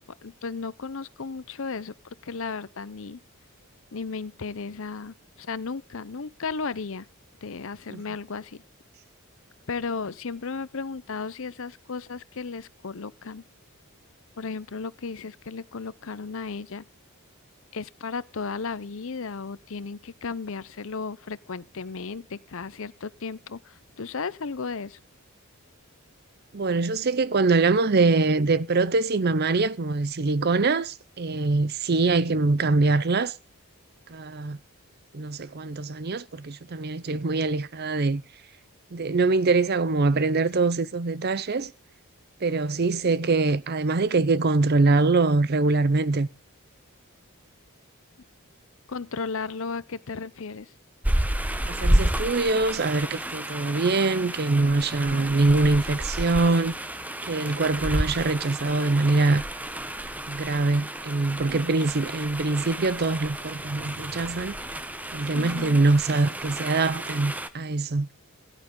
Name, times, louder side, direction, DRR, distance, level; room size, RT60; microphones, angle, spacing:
voice 1, 0.2-1.9 2.2-3.2 3.9-7.1 7.4-8.6 9.7-13.4 14.4-16.8 17.7-25.0 48.9-50.7 55.1-55.3 65.3-65.8, left 4 dB, 60° left, 0.7 m, -34 dB
voice 2, 26.5-33.3 34.1-34.6 35.1-38.2 38.9-41.7 42.4-46.3 51.6-56.7 57.2-59.4 60.3-64.6 65.1-68.1, right 3 dB, 45° right, 0.6 m, -23 dB
sound 1, 51.0-67.5, right 1 dB, 5° right, 0.8 m, -31 dB
sound 2, 62.3-64.8, right 1 dB, 65° right, 6.3 m, -51 dB
17.0 x 11.0 x 3.8 m
head